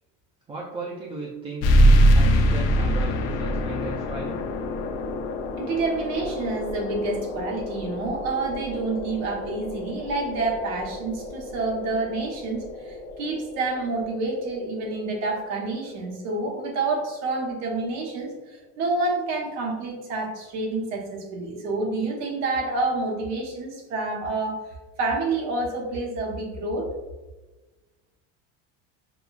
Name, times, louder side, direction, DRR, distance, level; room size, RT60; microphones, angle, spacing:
voice 1, 0.5-1.7 2.1-4.5, right 3 dB, 15° right, -2 dB, 0.3 m, -36 dB
sound 1, 1.6-16.7, equal, 75° left, 0.6 m, -25 dB
voice 2, 5.6-24.6 25.0-26.9, right 3 dB, 55° right, 0 dB, 1.1 m, -28 dB
6.6 x 2.3 x 2.3 m, 1.2 s
cardioid pair, 160°, 32 cm